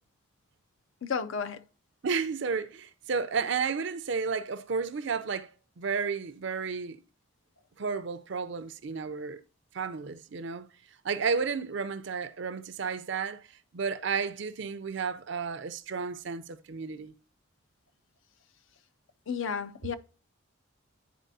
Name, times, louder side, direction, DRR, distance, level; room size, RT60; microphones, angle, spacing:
voice 1, 1.0-1.6 19.3-20.0, left 6 dB, 65° left, 0.5 m, -32 dB
voice 2, 2.0-5.5 5.8-7.0 7.8-9.4 9.7-10.7 11.0-13.4 13.7-17.1, right 5 dB, 55° right, 0.5 m, -32 dB
10.0 x 4.1 x 2.7 m
head